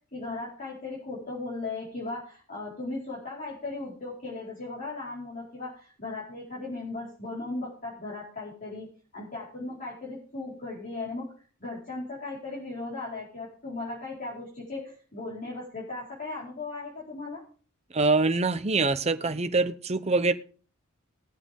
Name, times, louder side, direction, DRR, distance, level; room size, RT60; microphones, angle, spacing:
voice 1, 0.1-8.9 9.1-11.3 11.6-17.4, left 3 dB, 40° left, -7 dB, 4.8 m, -37 dB
voice 2, 17.9-20.3, right 3 dB, 30° right, 9 dB, 0.9 m, -24 dB
20.0 x 7.9 x 3.7 m, 0.40 s
head